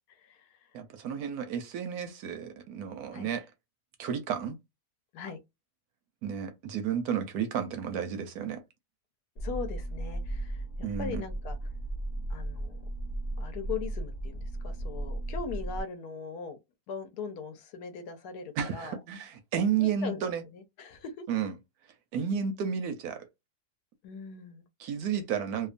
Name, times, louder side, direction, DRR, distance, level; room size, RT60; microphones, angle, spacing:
voice 1, 0.1-0.5 3.1-3.3 5.1-5.4 9.4-11.6 12.3-12.8 13.4-16.6 16.9-19.0 19.8-20.2 20.5-21.3 24.0-24.6, left 5 dB, 75° left, 1.1 m, -40 dB
voice 2, 0.7-3.5 4.0-4.6 6.2-8.6 10.8-11.2 18.6-20.4 21.3-21.5 22.1-23.2 24.8-25.7, right 7 dB, 70° right, 1.0 m, -32 dB
sound 1, 9.4-15.8, right 1 dB, 40° left, 0.6 m, -35 dB
2.8 x 2.2 x 2.4 m
omnidirectional pair, 1.8 m